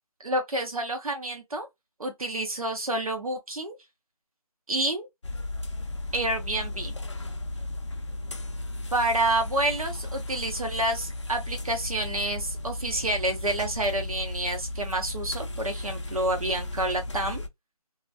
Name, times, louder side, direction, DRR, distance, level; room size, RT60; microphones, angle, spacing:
voice 1, 0.2-1.7 2.0-3.8 4.7-5.1 6.1-6.9 8.9-17.4, right 1 dB, 65° right, 0.8 m, -28 dB
sound 1, 5.2-17.5, left 2 dB, 50° left, 0.4 m, -35 dB
sound 2, 7.0-14.2, left 3 dB, 15° right, 0.5 m, -49 dB
2.3 x 2.2 x 2.5 m
figure-of-eight pair, 170°, 20 cm